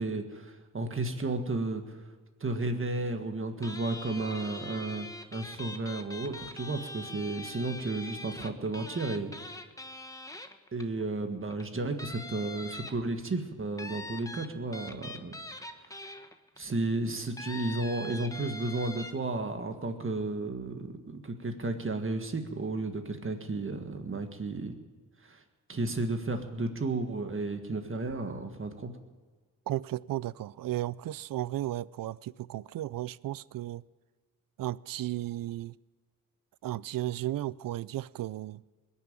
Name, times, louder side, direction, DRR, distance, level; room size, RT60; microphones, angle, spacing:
voice 1, 0.0-2.0 2.4-9.3 10.7-15.4 16.6-24.7 25.3-25.4 25.7-28.9, right 2 dB, 40° right, 1.8 m, -33 dB
sound 1, 3.6-11.0 11.5-11.6 12.0-13.3 13.8-16.6 17.4-19.1, left 2 dB, 10° left, 1.1 m, -43 dB
voice 2, 29.7-33.8 34.6-35.7 36.6-38.6, right 14 dB, 75° right, 0.5 m, -34 dB
21.0 x 7.1 x 9.0 m
cardioid pair, 80°, 34 cm